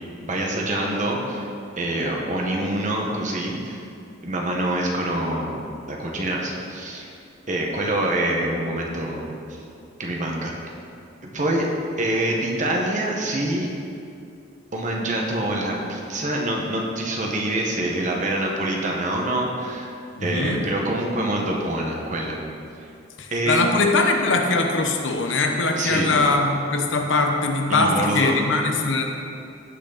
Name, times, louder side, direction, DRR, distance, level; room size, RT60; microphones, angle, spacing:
voice 1, 0.2-1.4 1.8-3.8 4.2-5.6 5.9-7.1 7.5-9.2 10.0-10.7 11.2-11.7 12.0-13.7 14.7-19.9 20.2-22.4 23.3-23.6 25.8-26.1 27.7-28.4, right 1 dB, 40° right, -1 dB, 1.6 m, -25 dB
voice 2, 20.1-20.6 23.2-29.0, left 3 dB, 80° left, 3 dB, 1.1 m, -21 dB
16.0 x 6.3 x 4.2 m, 2.5 s
head